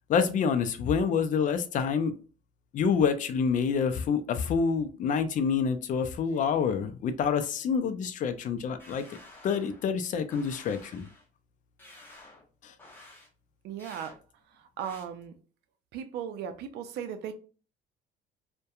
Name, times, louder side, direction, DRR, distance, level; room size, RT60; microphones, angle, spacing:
voice 1, 0.1-2.1 2.7-9.0 9.4-11.1 12.6-12.7, left 6 dB, 50° left, 0.4 m, -27 dB
sound 1, 8.8-9.9 10.3-11.3 11.8-12.4 12.8-13.3 13.8-14.2 14.8-15.0, left 2 dB, 10° left, 0.9 m, -51 dB
voice 2, 13.6-14.2 14.5-15.3 15.9-17.4, right 8 dB, 80° right, 0.4 m, -37 dB
2.7 x 2.2 x 2.3 m
cardioid pair, 110°, 17 cm